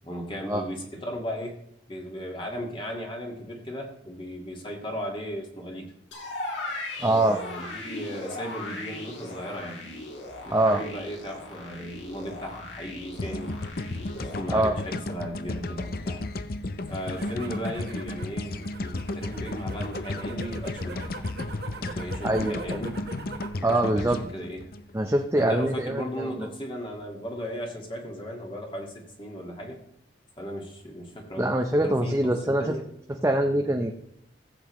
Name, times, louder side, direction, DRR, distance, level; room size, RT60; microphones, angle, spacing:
voice 1, 0.0-1.6 1.9-5.9 7.0-9.8 10.5-13.6 14.1-16.2 16.9-21.1 21.8-23.0 23.8-24.6 25.4-29.8 30.4-32.8, equal, 25° left, 0 dB, 1.9 m, -36 dB
sound 1, 6.1-14.4, left 2 dB, 80° left, 2.8 m, -38 dB
voice 2, 7.0-7.4 10.5-10.8 14.5-14.8 17.5-17.6 22.2-22.8 23.6-24.2 24.9-26.5 31.4-32.7 33.2-33.9, right 1 dB, 15° right, 3 dB, 0.7 m, -24 dB
sound 2, 13.2-25.4, left 2 dB, 50° left, 0.6 m, -34 dB
sound 3, 16.9-23.6 24.0-24.5, right 3 dB, 55° right, 1.3 m, -43 dB
15.5 x 7.9 x 3.1 m, 0.76 s
head